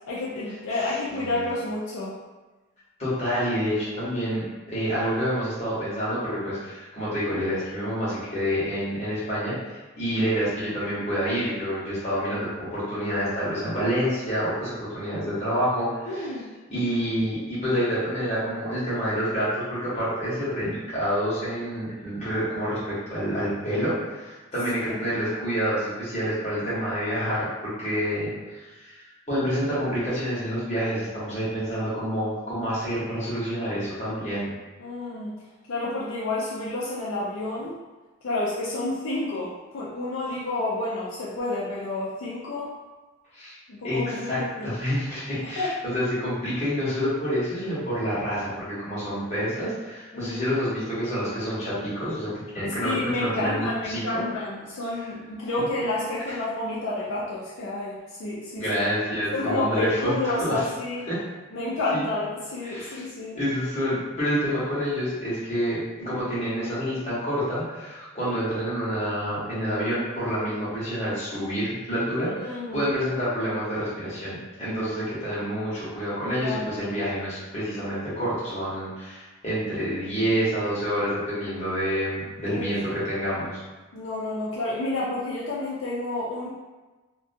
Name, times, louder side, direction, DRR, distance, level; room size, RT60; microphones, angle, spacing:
voice 1, 0.1-2.2 16.1-17.0 24.8-25.0 34.8-35.4 35.7-37.7 38.2-42.7 43.7-44.8 45.4-45.7 50.1-50.5 52.8-58.7 59.3-61.0 61.5-63.4 72.2-72.9 76.3-76.9 82.5-82.7 83.9-86.5, left 2 dB, 75° left, -7 dB, 0.5 m, -30 dB
voice 2, 1.1-1.4 3.0-16.3 16.7-34.5 43.3-43.6 43.8-54.2 55.6-55.7 56.3-56.4 58.5-60.6 61.1-61.2 61.9-62.0 62.6-63.0 63.3-83.6, equal, 35° left, -10 dB, 1.0 m, -28 dB
2.4 x 2.2 x 2.5 m, 1.2 s
head